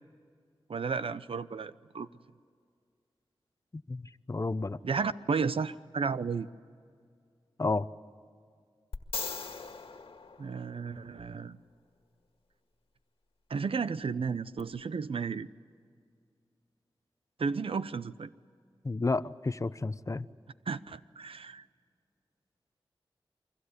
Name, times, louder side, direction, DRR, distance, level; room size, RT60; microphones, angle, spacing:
voice 1, 0.7-2.1 4.8-6.5 10.4-11.6 13.5-15.5 17.4-18.3 20.7-21.6, right 5 dB, 80° right, 14 dB, 0.8 m, -33 dB
voice 2, 4.3-4.8 7.6-7.9 18.8-20.2, left 3 dB, 35° left, 14 dB, 0.8 m, -31 dB
sound 1, 8.9-11.2 14.6-14.7, left 4 dB, 90° left, 1.8 m, -40 dB
29.0 x 23.5 x 8.2 m, 2.2 s
wide cardioid pair, 70°, 9 cm